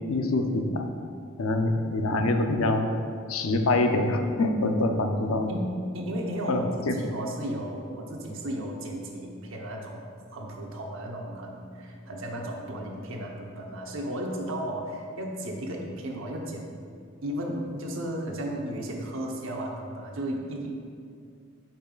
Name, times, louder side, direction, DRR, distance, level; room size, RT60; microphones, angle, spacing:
voice 1, 0.1-0.9 1.4-2.9 3.3-5.5 6.5-7.0, left 2 dB, 85° left, 5 dB, 0.6 m, -25 dB
voice 2, 5.5-10.0 10.3-16.8 17.2-20.7, right 1 dB, 70° right, 0 dB, 0.9 m, -34 dB
8.8 x 5.5 x 2.4 m, 2.2 s
head